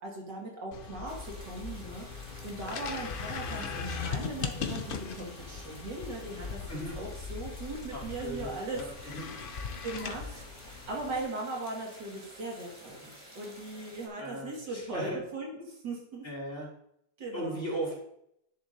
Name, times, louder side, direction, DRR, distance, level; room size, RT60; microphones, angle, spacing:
voice 1, 0.0-9.3 9.8-16.2 17.2-17.6, right 2 dB, 90° right, -2 dB, 2.7 m, -39 dB
sound 1, 0.7-11.2, left 5 dB, 55° left, 0.6 m, -39 dB
sound 2, 1.1-14.1, right 1 dB, 20° right, 1.6 m, -52 dB
voice 2, 7.9-8.9 9.1-9.2 14.2-15.2 16.2-16.7 17.3-18.0, right 1 dB, 35° left, -4 dB, 2.8 m, -37 dB
10.5 x 7.0 x 2.7 m, 0.73 s
omnidirectional pair, 1.8 m